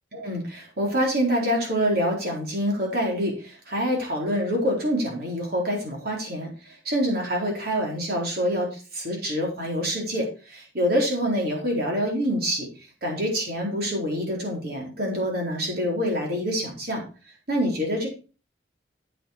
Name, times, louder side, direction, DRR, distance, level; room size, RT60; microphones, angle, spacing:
voice 1, 0.1-12.7 13.0-17.0 17.5-18.1, equal, 55° right, -1 dB, 4.1 m, -26 dB
8.6 x 8.0 x 4.5 m, 0.35 s
head